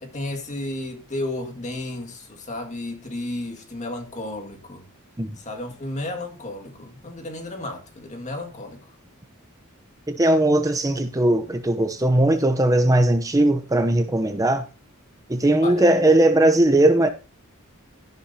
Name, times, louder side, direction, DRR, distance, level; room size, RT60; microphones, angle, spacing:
voice 1, 0.0-4.9 5.4-8.9 15.6-16.0, left 1 dB, 35° left, 2.1 m, -33 dB
voice 2, 10.1-14.6 15.3-17.1, right 1 dB, 15° right, 0.8 m, -19 dB
13.5 x 11.0 x 2.8 m
head